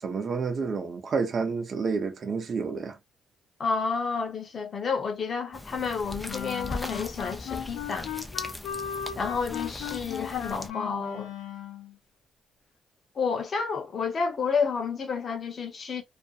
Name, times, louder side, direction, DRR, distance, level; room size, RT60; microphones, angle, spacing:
voice 1, 0.0-3.0, right 5 dB, 45° right, 0.7 m, -29 dB
voice 2, 3.6-8.1 9.2-11.3 13.2-16.0, left 5 dB, 45° left, 0.9 m, -30 dB
sound 1, 5.5-10.7, left 1 dB, 15° left, 0.5 m, -39 dB
sound 2, 6.3-11.9, left 9 dB, 90° left, 0.6 m, -37 dB
2.5 x 2.2 x 2.4 m
cardioid pair, 90°, 0 cm